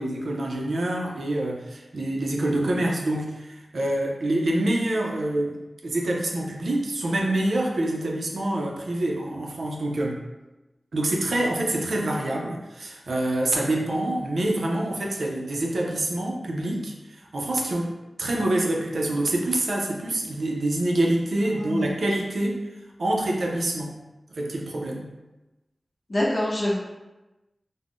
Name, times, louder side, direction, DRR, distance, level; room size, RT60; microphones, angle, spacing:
voice 1, 0.0-5.5 5.8-10.2 10.9-17.9 18.2-22.6 23.0-24.0 24.3-25.1, right 1 dB, 80° right, -1 dB, 0.5 m, -26 dB
voice 2, 26.1-26.8, left 1 dB, 50° left, -4 dB, 0.7 m, -25 dB
2.4 x 2.1 x 3.5 m, 1.1 s
wide cardioid pair, 75°, 0 cm